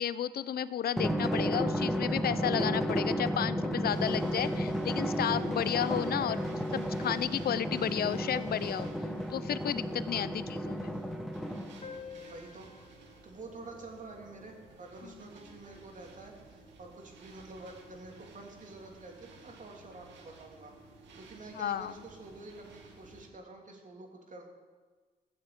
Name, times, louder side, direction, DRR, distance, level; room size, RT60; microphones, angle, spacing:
voice 1, 0.0-8.9 9.3-10.9 21.6-21.9, left 10 dB, 55° left, 16 dB, 0.6 m, -32 dB
Drum, 1.0-12.0, equal, ahead, 1.4 m, -33 dB
sound 1, 3.9-23.3, right 3 dB, 75° right, 2.3 m, -54 dB
sound 2, 11.8-16.8, left 6 dB, 35° left, 2.0 m, -52 dB
voice 2, 12.2-12.7 13.2-20.7 21.2-24.5, right 2 dB, 45° right, 1 dB, 3.2 m, -48 dB
14.0 x 7.3 x 7.8 m, 1.4 s
supercardioid pair, 60°, 19 cm